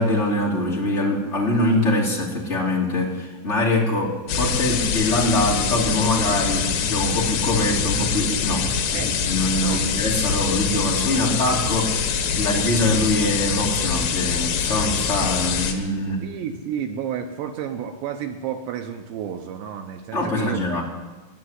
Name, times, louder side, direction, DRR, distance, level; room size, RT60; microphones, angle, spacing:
voice 1, 0.0-12.1 12.4-16.2 20.1-20.8, left 1 dB, 20° left, -3 dB, 2.1 m, -23 dB
sound 1, 4.3-15.7, left 6 dB, 90° left, 4.0 m, -24 dB
voice 2, 16.2-20.8, right 8 dB, 80° right, 5 dB, 2.7 m, -31 dB
19.5 x 6.8 x 9.7 m, 1.3 s
omnidirectional pair, 5.4 m